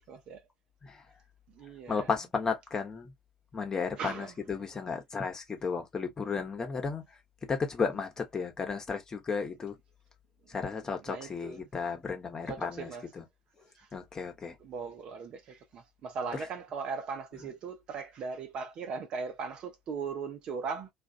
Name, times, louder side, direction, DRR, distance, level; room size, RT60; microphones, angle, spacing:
voice 1, 0.1-0.4 1.5-2.1 4.0-4.3 11.1-11.7 12.5-13.1 13.8-13.9 14.6-20.9, right 5 dB, 50° right, 0.8 m, -38 dB
voice 2, 1.9-3.1 3.5-7.0 7.4-9.8 10.5-13.3 13.9-14.6 16.3-16.5, left 5 dB, 30° left, 1.0 m, -34 dB
2.5 x 2.4 x 2.5 m
figure-of-eight pair, 60°, 2 cm